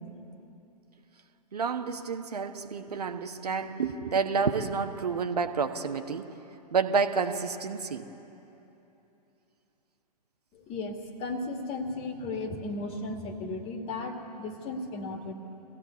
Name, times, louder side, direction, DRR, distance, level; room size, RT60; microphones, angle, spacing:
voice 1, 1.5-6.3 6.7-8.1, right 5 dB, 70° right, 7 dB, 1.3 m, -29 dB
voice 2, 10.5-15.3, left 2 dB, 25° left, 5 dB, 2.0 m, -35 dB
23.5 x 16.5 x 8.3 m, 3.0 s
figure-of-eight pair, 110°, 21 cm